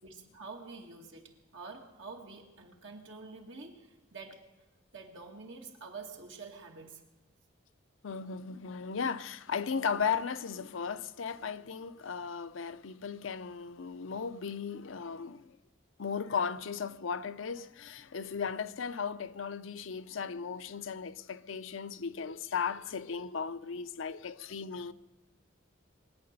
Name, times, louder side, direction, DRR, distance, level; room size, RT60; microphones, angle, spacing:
voice 1, 0.0-4.4 4.9-7.0, right 4 dB, 65° right, 2.1 m, -47 dB
voice 2, 8.0-15.6 16.0-24.9, left 6 dB, 75° left, 0.6 m, -36 dB
22.5 x 8.6 x 6.6 m
head